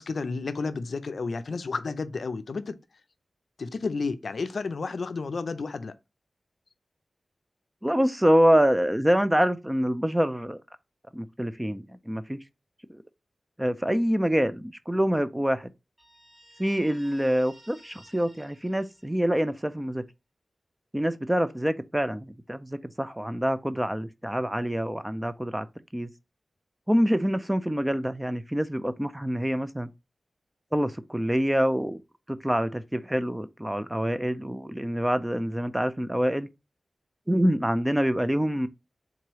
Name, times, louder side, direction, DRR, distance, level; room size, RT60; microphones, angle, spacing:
voice 1, 0.0-2.8 3.6-5.9, left 4 dB, 70° left, 0.4 m, -31 dB
voice 2, 7.8-10.6 11.1-12.4 12.9-13.0 13.6-15.7 16.6-20.0 20.9-25.7 25.9-26.1 26.9-29.9 30.7-32.0 32.3-36.5 37.3-38.7, equal, 10° right, 0.4 m, -26 dB
Guitar, 16.0-19.5, equal, 15° left, 1.4 m, -55 dB
3.8 x 3.0 x 4.5 m
wide cardioid pair, 105°, 0 cm